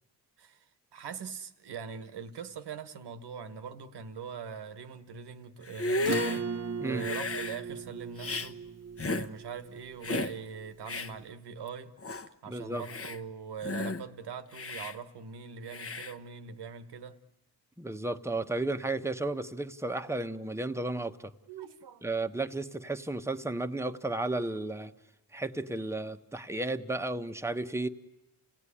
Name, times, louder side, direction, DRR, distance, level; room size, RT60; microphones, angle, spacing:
voice 1, 0.9-6.4 6.8-8.6 9.0-11.9 12.4-17.2 21.5-22.1, right 6 dB, 80° right, 1.4 m, -42 dB
Hiss, 5.6-6.4 7.0-7.6 8.2-8.5 9.0-9.3 10.0-10.3 10.9-11.1 11.7-11.8 12.0-12.3 12.8-13.2 13.6-14.0 14.5-14.9 15.7-16.1, left 3 dB, 35° left, 1.1 m, -33 dB
Acoustic guitar / Strum, 6.0-10.9, right 5 dB, 40° right, 1.0 m, -38 dB
voice 2, 12.5-12.8 17.8-21.3 22.0-24.9 25.3-27.9, right 2 dB, 5° right, 1.0 m, -33 dB
29.5 x 16.5 x 9.9 m
cardioid pair, 80°, 39 cm